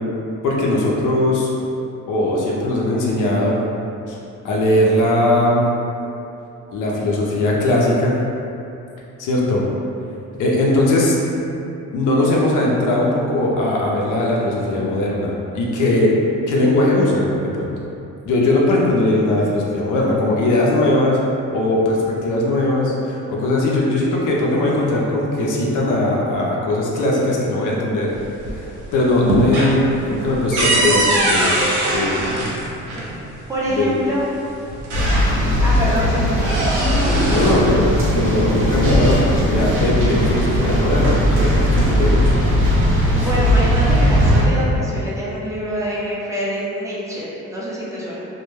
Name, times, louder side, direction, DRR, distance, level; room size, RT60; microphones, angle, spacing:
voice 1, 0.4-1.5 2.1-3.6 4.1-4.2 4.4-5.6 6.7-8.1 9.2-9.6 10.3-11.2 11.9-16.1 16.5-17.8 18.2-21.2 21.5-28.1 28.6-28.7 28.9-32.3 33.7-33.9 35.4-35.7 37.3-37.8 38.1-42.3, left 1 dB, 80° left, -3 dB, 0.6 m, -19 dB
sound 1, 28.1-28.8 29.1-33.1 34.2-34.3 34.7-35.6 36.0-37.7 38.6-39.4, right 1 dB, 85° right, 0.6 m, -21 dB
voice 2, 33.5-34.3 35.6-36.6 43.1-48.3, equal, 10° right, -8 dB, 0.6 m, -25 dB
sound 2, 34.9-44.4, equal, 45° right, 0.7 m, -18 dB
2.2 x 2.1 x 3.1 m, 2.7 s
cardioid pair, 90°, 30 cm